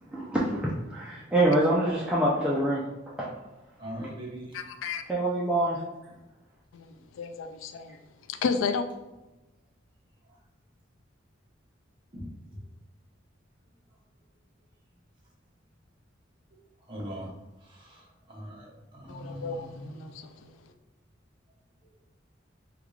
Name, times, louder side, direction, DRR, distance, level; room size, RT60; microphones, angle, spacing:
voice 1, 0.1-2.8 3.2-3.3 4.0-4.1 5.1-5.8, right 1 dB, 5° right, -6 dB, 0.4 m, -25 dB
voice 2, 3.8-4.5 12.1-12.3 16.9-17.3 17.7-18.7 18.9-20.0, right 1 dB, 25° right, -4 dB, 0.8 m, -40 dB
voice 3, 4.5-5.0 6.7-8.0 8.3-8.9 19.1-20.5, left 5 dB, 75° left, 9 dB, 0.3 m, -33 dB
3.6 x 2.3 x 3.1 m, 1.0 s
head